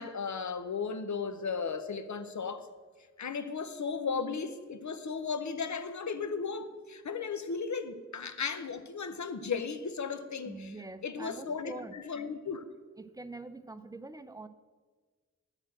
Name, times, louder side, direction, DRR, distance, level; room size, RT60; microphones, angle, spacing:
voice 1, 0.0-2.7 3.2-10.7 11.0-12.6, left 5 dB, 65° left, 0.7 m, -35 dB
voice 2, 10.5-12.0 13.0-14.5, right 2 dB, 10° right, 0.5 m, -44 dB
9.8 x 4.4 x 7.5 m
wide cardioid pair, 50°, 31 cm